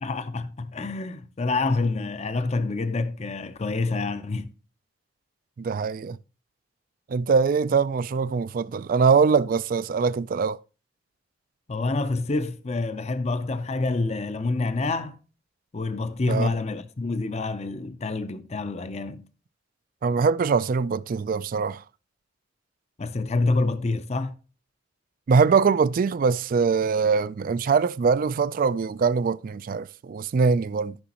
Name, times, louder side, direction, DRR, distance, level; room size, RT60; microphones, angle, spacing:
voice 1, 0.0-4.5 11.7-15.2 15.7-19.2 23.0-24.4, left 3 dB, 35° left, 0.5 m, -27 dB
voice 2, 5.6-6.2 7.1-10.6 16.3-16.5 20.0-21.8 25.3-31.0, right 5 dB, 45° right, 0.3 m, -22 dB
13.5 x 6.0 x 2.9 m
head